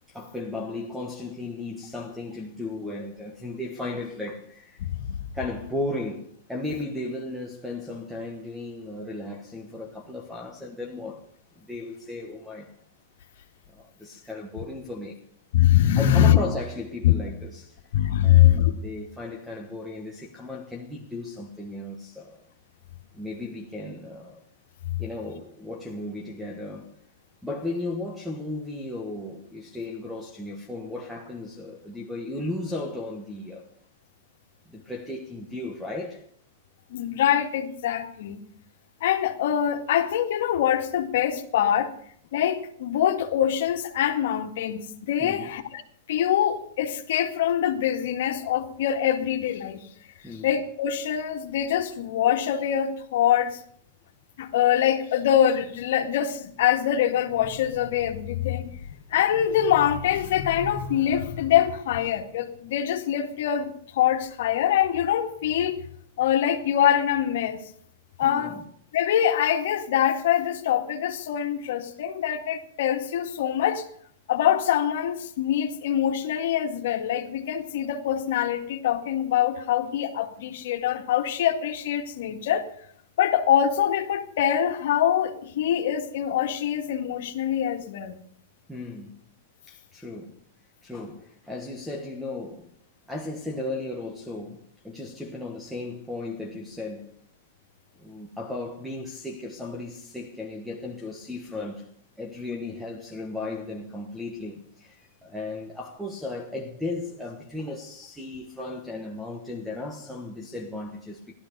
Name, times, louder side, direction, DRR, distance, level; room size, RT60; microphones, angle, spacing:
voice 1, 0.1-4.9 5.3-11.2 11.5-12.7 13.7-15.2 16.0-17.8 18.2-22.5 23.1-24.4 25.0-26.9 27.4-33.7 34.7-36.2 45.2-45.5 50.2-50.5 68.2-68.6 88.7-89.2 89.7-90.4 90.8-92.7 93.1-97.1 98.0-101.9 102.2-111.3, left 2 dB, ahead, 1.4 m, -35 dB
voice 2, 4.8-5.2 15.5-16.4 17.0-17.1 17.9-18.7 24.9-25.0 36.9-38.4 39.0-41.9 42.3-45.8 46.1-49.8 50.4-53.6 54.4-65.8 66.2-67.6 68.2-68.6 68.9-73.8 74.3-82.6 83.2-88.2, left 10 dB, 65° left, 2.0 m, -24 dB
15.5 x 12.5 x 6.8 m
supercardioid pair, 165°, 0 cm